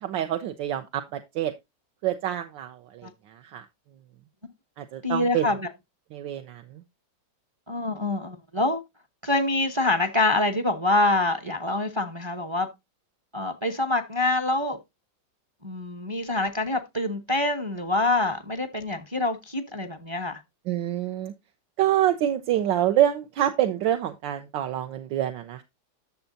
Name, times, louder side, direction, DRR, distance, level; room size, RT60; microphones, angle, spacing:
voice 1, 0.0-1.5 2.0-3.6 4.8-5.5 6.1-6.8 20.7-21.3 21.8-25.6, right 11 dB, 75° right, 1.4 m, -26 dB
voice 2, 5.0-5.6 7.7-8.8 9.2-12.7 13.3-14.8 15.6-20.4, left 2 dB, 30° right, 0.5 m, -25 dB
11.5 x 6.9 x 2.6 m
omnidirectional pair, 2.1 m